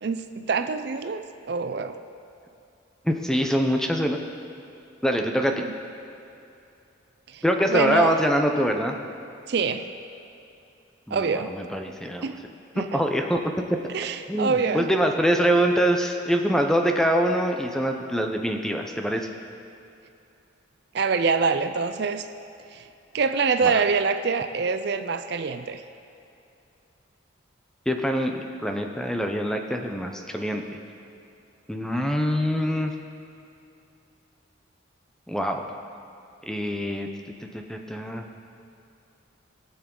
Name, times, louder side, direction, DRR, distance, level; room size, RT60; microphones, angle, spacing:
voice 1, 0.0-1.2 1.5-2.0 5.6-5.7 7.3-7.4 7.7-8.2 9.5-9.9 11.1-11.5 12.2-12.4 12.7-13.0 13.9-14.9 20.9-22.2 22.7-22.8 23.1-25.8, right 5 dB, 55° right, 9 dB, 0.4 m, -25 dB
voice 2, 3.0-4.2 5.0-5.6 7.4-9.0 11.1-12.2 12.9-13.4 14.3-19.2 23.6-23.8 27.9-30.8 31.7-32.9 35.3-35.6 36.5-37.1 37.7-38.2, equal, 5° left, 4 dB, 0.6 m, -24 dB
20.5 x 7.1 x 3.8 m, 2.7 s
head